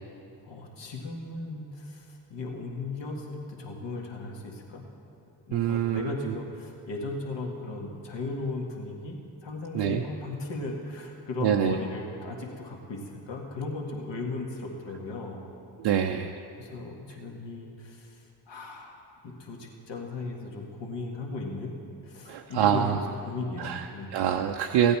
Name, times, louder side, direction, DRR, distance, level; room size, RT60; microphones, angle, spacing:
voice 1, 0.4-4.8 5.5-15.4 16.6-18.9 19.2-24.1, left 3 dB, 60° left, 0 dB, 1.9 m, -36 dB
voice 2, 5.5-6.3 9.7-10.0 11.4-11.8 15.8-16.4 22.3-23.0 23.6-23.9 24.1-25.0, right 9 dB, 65° right, 2 dB, 0.7 m, -25 dB
15.5 x 8.8 x 4.3 m, 2.7 s
hypercardioid pair, 50°, 48 cm